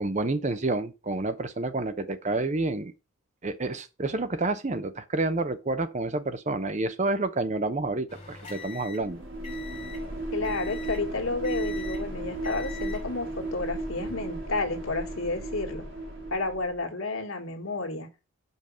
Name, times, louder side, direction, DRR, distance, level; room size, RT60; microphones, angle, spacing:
voice 1, 0.0-2.9 3.4-9.2, right 2 dB, 35° right, 0.7 m, -29 dB
sound 1, 8.1-10.1 10.4-11.1 11.4-12.1 12.4-13.1 13.9-14.1, left 8 dB, 25° left, 2.7 m, -43 dB
sound 2, 9.0-16.8, right 2 dB, 70° right, 2.8 m, -35 dB
voice 2, 10.3-15.9 16.3-18.1, left 3 dB, 80° left, 1.8 m, -31 dB
5.4 x 5.2 x 6.2 m
head